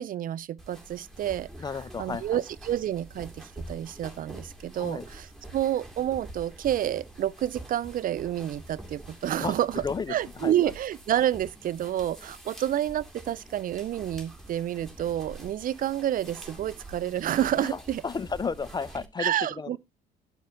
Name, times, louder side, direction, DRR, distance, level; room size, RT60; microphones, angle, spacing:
voice 1, 0.0-1.5 2.0-5.3 5.5-9.8 10.1-18.0 19.2-19.8, right 11 dB, 40° right, 0.4 m, -29 dB
sound 1, 0.6-19.1, right 1 dB, ahead, 2.3 m, -46 dB
voice 2, 1.6-2.4 4.8-5.1 9.4-10.5 17.6-19.8, left 5 dB, 20° left, 0.3 m, -33 dB
11.5 x 7.9 x 2.3 m
hypercardioid pair, 55°, 21 cm